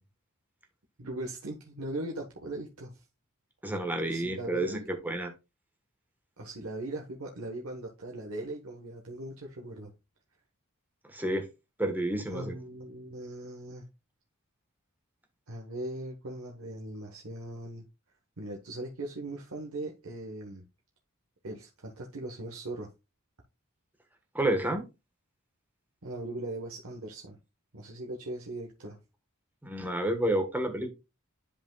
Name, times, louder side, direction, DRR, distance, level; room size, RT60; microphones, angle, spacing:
voice 1, 1.0-3.0 4.0-4.9 6.4-9.9 12.3-13.9 15.5-17.8 18.4-20.6 21.4-22.9 26.0-27.4 27.7-29.0, right 1 dB, 75° right, 1.2 m, -39 dB
voice 2, 3.6-5.3 11.1-11.4 11.8-12.6 24.3-24.8 29.6-30.9, right 1 dB, 10° right, 1.2 m, -30 dB
10.5 x 5.2 x 2.3 m
head